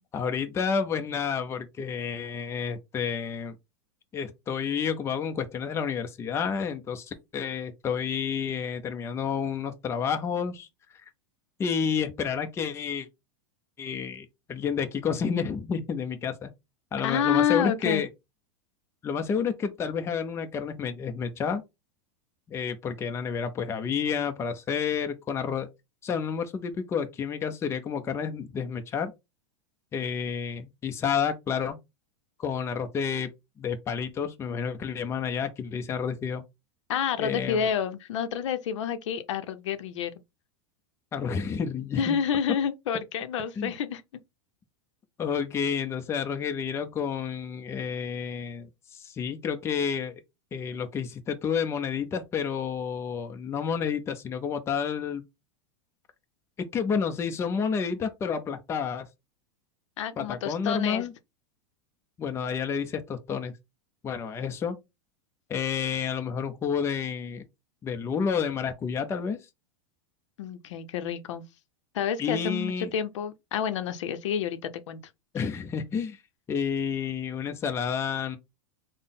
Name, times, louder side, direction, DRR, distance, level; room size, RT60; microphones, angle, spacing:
voice 1, 0.0-3.6 4.1-10.7 11.6-13.1 13.8-16.5 16.9-18.1 19.0-21.6 22.5-25.7 26.0-29.1 29.9-31.8 32.4-33.3 33.6-36.4 37.2-37.7 41.1-42.2 43.6-43.7 45.2-50.2 50.5-55.2 56.6-59.1 60.2-61.1 62.2-63.5 64.0-64.7 65.5-67.4 67.8-69.4 72.2-72.9 75.3-76.2 76.5-78.4, left 6 dB, 15° left, 0.5 m, -30 dB
voice 2, 17.0-18.0 36.9-40.1 42.0-44.0 60.0-61.0 70.4-71.4 71.9-74.6 74.9-75.0, left 8 dB, 80° left, 0.6 m, -29 dB
3.7 x 2.0 x 3.6 m
supercardioid pair, 145°, 15 cm